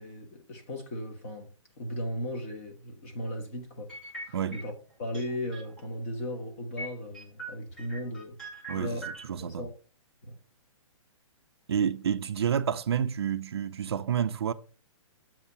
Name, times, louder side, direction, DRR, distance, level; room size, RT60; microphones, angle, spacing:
voice 1, 0.0-1.5 1.8-3.9 4.3-4.7 5.0-8.4 8.7-9.1 9.4-9.7 10.2-10.4, left 1 dB, 25° left, 1.1 m, -36 dB
sound 1, 3.9-4.8 5.1-5.9 6.2-6.3 6.8-9.2, right 2 dB, 5° left, 0.6 m, -41 dB
voice 2, 4.3-4.6 8.7-9.7 11.7-14.5, right 8 dB, 50° right, 0.4 m, -29 dB
7.3 x 2.8 x 5.4 m
hypercardioid pair, 180°, 17 cm